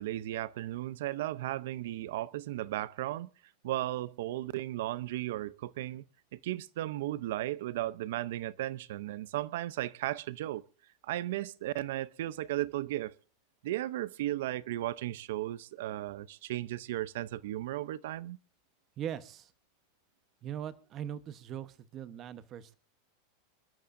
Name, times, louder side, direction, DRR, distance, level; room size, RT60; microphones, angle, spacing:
voice 1, 0.0-3.3 3.6-6.0 6.3-10.6 11.0-13.2 13.6-18.4, right 14 dB, 75° right, 0.6 m, -35 dB
voice 2, 19.0-19.5 20.4-22.7, right 10 dB, 35° right, 1.0 m, -40 dB
26.5 x 12.5 x 2.6 m
supercardioid pair, 140°, 0 cm